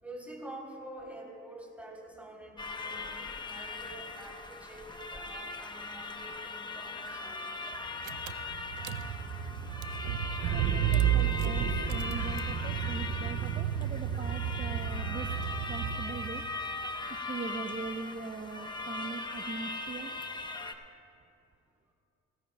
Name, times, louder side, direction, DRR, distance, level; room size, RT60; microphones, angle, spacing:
voice 1, 0.0-7.5, right 1 dB, 5° right, -2 dB, 3.2 m, -47 dB
sound 1, 2.6-20.7, left 3 dB, 15° left, 0.8 m, -39 dB
Car / Engine, 7.7-7.8 8.0-16.4, right 9 dB, 80° right, 0.6 m, -32 dB
voice 2, 10.5-15.3 15.7-16.4 17.1-20.1, right 4 dB, 25° right, 7 dB, 0.6 m, -41 dB
19.0 x 16.5 x 2.2 m, 2.5 s
cardioid pair, 90°, 30 cm